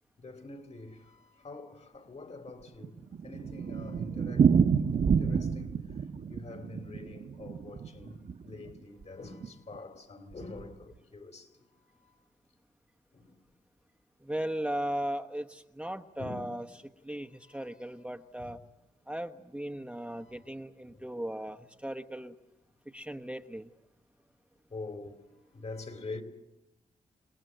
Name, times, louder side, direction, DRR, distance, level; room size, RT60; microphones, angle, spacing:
voice 1, 0.2-12.2 13.1-13.4 16.2-16.5 17.4-17.8 18.4-18.5 19.9-20.5 20.8-21.1 24.7-25.2 25.5-26.2, left 3 dB, 50° left, 3.8 m, -46 dB
Thunder, 2.5-8.8 9.0-9.1 9.4-9.5 9.7-9.8 10.4-10.7, right 6 dB, 65° right, 1.2 m, -28 dB
voice 2, 14.2-16.6 17.0-18.6 19.1-22.3 22.9-23.7, right 1 dB, 10° right, 1.1 m, -37 dB
29.0 x 19.0 x 7.8 m
cardioid pair, 60°, 14 cm